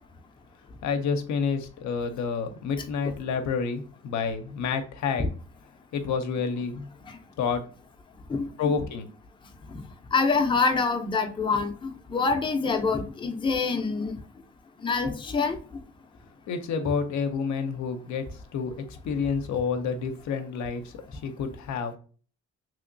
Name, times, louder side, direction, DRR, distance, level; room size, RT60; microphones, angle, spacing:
voice 1, 0.8-5.3 5.9-6.9 7.4-7.6 8.6-9.1 16.5-18.3 18.5-22.0, left 5 dB, 70° left, 0.6 m, -29 dB
voice 2, 10.1-14.1 14.8-15.6, left 4 dB, 15° left, 0.5 m, -25 dB
3.0 x 2.8 x 2.6 m
cardioid pair, 90°, 30 cm